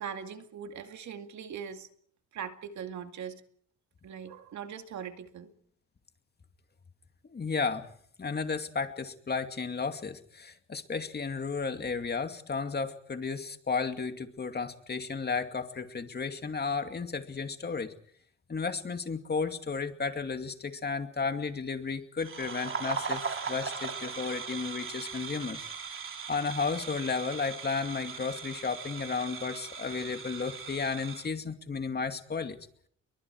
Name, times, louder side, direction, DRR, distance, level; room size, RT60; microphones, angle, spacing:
voice 1, 0.0-1.9 2.3-3.4 4.0-5.5, right 7 dB, 70° right, 7 dB, 2.4 m, -40 dB
voice 2, 7.2-7.9 8.2-17.9 18.5-25.7 26.3-32.6, left 5 dB, 35° left, 7 dB, 2.5 m, -33 dB
sound 1, 22.2-31.3, right 5 dB, 45° right, 4.1 m, -39 dB
29.5 x 23.0 x 4.8 m, 0.63 s
cardioid pair, 90°, 30 cm